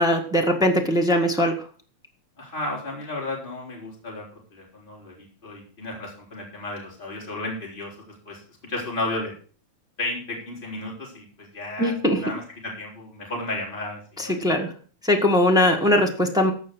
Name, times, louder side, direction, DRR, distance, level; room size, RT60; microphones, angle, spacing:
voice 1, 0.0-1.5 11.8-12.2 14.2-14.7 15.0-16.5, left 1 dB, 5° right, 1 dB, 0.7 m, -20 dB
voice 2, 2.4-4.2 4.5-7.9 8.3-8.4 8.7-9.3 10.0-11.9 12.2-14.4, left 2 dB, 15° left, -3 dB, 4.2 m, -33 dB
15.5 x 5.5 x 6.2 m, 0.41 s
omnidirectional pair, 3.3 m